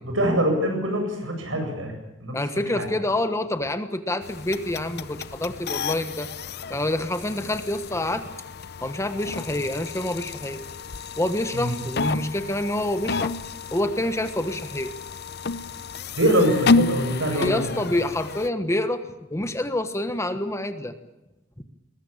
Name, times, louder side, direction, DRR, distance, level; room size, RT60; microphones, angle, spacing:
voice 1, 0.0-1.9 2.2-2.4 2.7-2.9 11.5-11.7 16.2-17.6, equal, 80° right, 4 dB, 8.0 m, -23 dB
voice 2, 2.3-6.3 6.7-8.3 8.8-10.6 11.2-13.3 13.7-14.9 17.3-19.0 19.3-20.9, left 1 dB, 15° left, 9 dB, 1.3 m, -27 dB
sound 1, 4.2-18.5, left 4 dB, 55° left, 0.7 m, -30 dB
21.5 x 20.5 x 8.8 m, 0.99 s
head